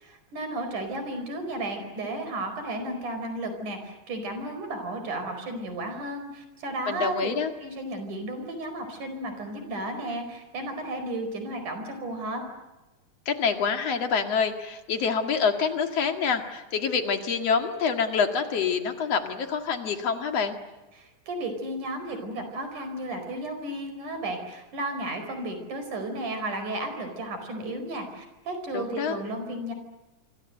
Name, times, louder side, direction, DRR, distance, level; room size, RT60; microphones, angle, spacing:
voice 1, 0.0-7.3 7.6-12.4 20.9-29.7, right 1 dB, 90° right, 7 dB, 6.3 m, -33 dB
voice 2, 6.9-7.5 13.3-20.6 28.7-29.2, left 6 dB, 55° left, 6 dB, 3.0 m, -26 dB
26.5 x 25.5 x 7.9 m, 1.1 s
omnidirectional pair, 3.5 m